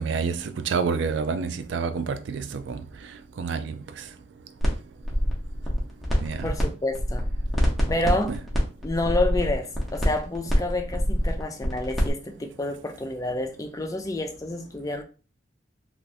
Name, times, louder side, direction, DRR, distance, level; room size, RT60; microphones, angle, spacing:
voice 1, 0.0-2.8 3.4-3.8 6.2-6.5 8.3-8.4, right 5 dB, 70° right, 0.3 m, -28 dB
sound 1, 4.6-4.7 5.0-6.6 6.9-12.1, equal, ahead, 0.7 m, -26 dB
voice 2, 6.4-7.2 7.9-8.3 8.8-15.0, left 2 dB, 15° left, 0.3 m, -29 dB
2.6 x 2.5 x 3.3 m
head